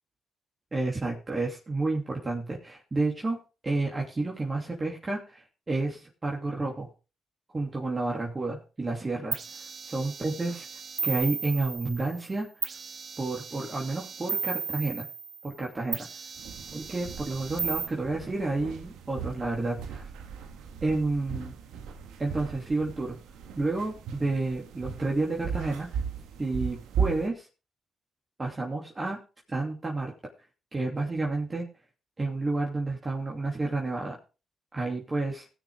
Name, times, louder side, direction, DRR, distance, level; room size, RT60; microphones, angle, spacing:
voice 1, 0.7-6.9 7.5-10.7 11.0-12.5 13.2-15.1 15.4-16.1 16.7-20.1 20.8-21.5 22.2-23.2 23.6-25.9 26.4-27.5 28.4-29.2 29.5-30.1 30.7-31.7 32.2-34.2 34.7-35.5, right 2 dB, 30° right, -2 dB, 2.9 m, -30 dB
sound 1, 9.3-12.2 12.6-15.5 15.9-17.9, right 6 dB, 55° right, 1.0 m, -35 dB
sound 2, 16.4-27.3, right 6 dB, 85° right, 1.4 m, -37 dB
18.0 x 6.8 x 3.7 m, 0.32 s
supercardioid pair, 60°, 0 cm